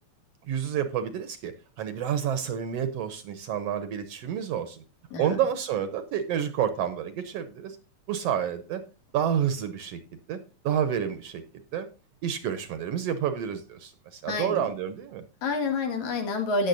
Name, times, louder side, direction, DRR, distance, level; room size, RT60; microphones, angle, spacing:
voice 1, 0.5-1.5 1.8-4.8 5.2-7.8 8.1-8.8 9.1-10.0 10.3-10.4 10.6-11.4 11.7-11.9 12.2-15.3, right 9 dB, 70° right, 11 dB, 1.7 m, -29 dB
voice 2, 14.3-14.7 15.4-16.7, left 3 dB, 70° left, 4 dB, 3.2 m, -28 dB
14.5 x 9.6 x 2.6 m, 0.32 s
omnidirectional pair, 3.4 m